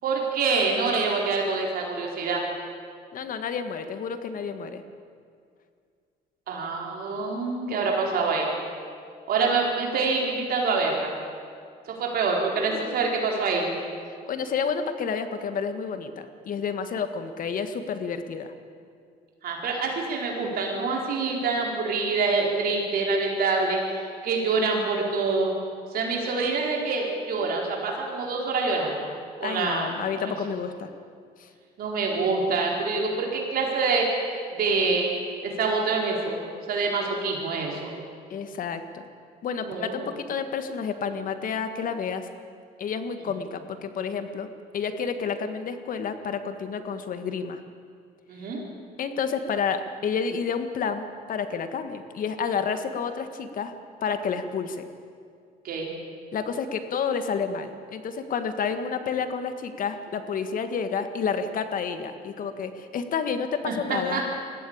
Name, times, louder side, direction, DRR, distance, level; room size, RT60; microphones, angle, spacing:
voice 1, 0.0-2.4 6.5-8.5 9.3-11.1 11.9-13.7 19.4-25.5 25.9-29.1 29.4-30.3 31.8-35.1 35.4-36.4 36.7-37.9 39.6-40.0 48.3-48.6 55.6-55.9 63.7-63.8 64.1-64.2, right 4 dB, 60° right, -1 dB, 4.2 m, -26 dB
voice 2, 3.1-4.8 12.7-13.0 14.3-18.5 29.4-30.9 31.4-31.5 38.3-39.0 39.4-42.3 42.8-44.5 44.7-47.6 49.0-53.7 54.0-54.9 56.3-64.2, left 6 dB, 55° left, 9 dB, 1.7 m, -30 dB
21.0 x 15.0 x 8.7 m, 2.2 s
cardioid pair, 110°, 17 cm